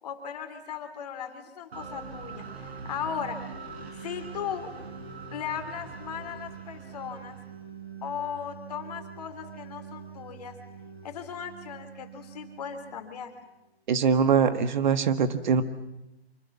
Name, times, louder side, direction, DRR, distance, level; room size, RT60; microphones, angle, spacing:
voice 1, 0.0-3.4 3.9-4.7 5.1-7.4 8.0-10.5 11.0-13.3, left 8 dB, 35° left, 7 dB, 3.2 m, -37 dB
sound 1, 1.7-13.5, right 6 dB, 70° right, 5.0 m, -43 dB
voice 2, 13.9-15.6, right 6 dB, 45° right, 11 dB, 1.8 m, -22 dB
25.5 x 24.0 x 7.3 m, 0.92 s
hypercardioid pair, 155°, 33 cm